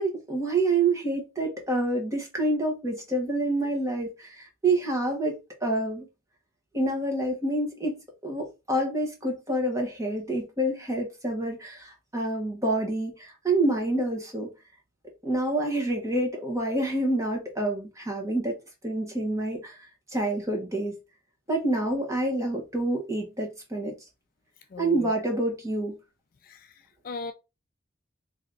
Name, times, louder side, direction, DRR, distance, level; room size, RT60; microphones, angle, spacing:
voice 1, 0.0-6.1 6.7-8.0 8.2-14.5 15.2-18.5 18.8-21.0 21.5-23.9 24.8-26.0, right 2 dB, 15° right, 1.2 m, -27 dB
voice 2, 24.7-25.1 26.5-26.6 27.0-27.3, left 4 dB, 45° left, 0.4 m, -36 dB
3.3 x 2.9 x 3.9 m
head